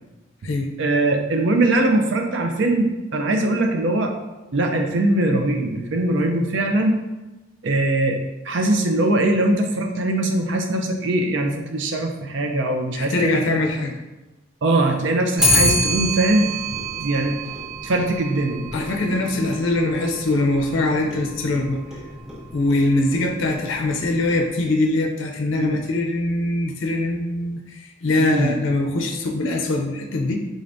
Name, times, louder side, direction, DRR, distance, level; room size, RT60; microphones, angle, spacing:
voice 1, 0.8-4.1 4.5-7.0 7.6-8.2 8.4-13.6 14.6-16.5 16.9-17.4 17.8-18.7 25.6-25.8 28.2-28.6, right 2 dB, 60° right, 3 dB, 0.5 m, -21 dB
voice 2, 12.9-13.9 18.7-21.8 22.5-30.3, left 2 dB, 70° left, 1 dB, 0.5 m, -22 dB
Clock, 15.4-24.7, equal, 5° right, 0.4 m, -27 dB
3.8 x 3.3 x 2.6 m, 1.1 s
head